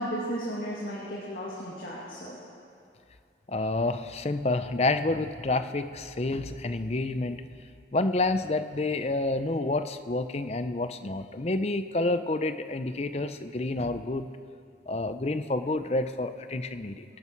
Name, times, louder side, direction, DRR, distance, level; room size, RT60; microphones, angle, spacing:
voice 1, 0.0-2.4, equal, 50° left, -6 dB, 2.3 m, -34 dB
voice 2, 3.5-7.4 7.9-14.3 14.9-17.0, left 2 dB, 35° left, 10 dB, 0.6 m, -29 dB
24.5 x 11.5 x 4.6 m, 2.4 s
head